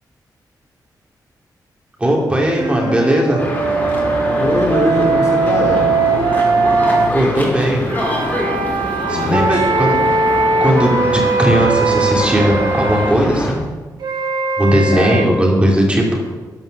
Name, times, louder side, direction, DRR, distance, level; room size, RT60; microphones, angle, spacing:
voice 1, 2.0-3.4 7.1-7.8 9.1-9.9 10.6-13.6 14.6-16.2, right 1 dB, 15° right, -1 dB, 2.9 m, -17 dB
sound 1, 2.6-7.1 7.8-13.2 14.0-15.2, right 3 dB, 80° right, 1.6 m, -19 dB
sound 2, 3.4-13.5, left 1 dB, 25° left, 3.1 m, -24 dB
voice 2, 4.4-5.9 9.1-9.7 14.9-15.3, left 2 dB, 40° left, -1 dB, 2.7 m, -21 dB
12.5 x 5.7 x 6.7 m, 1.3 s
wide cardioid pair, 110°, 7 cm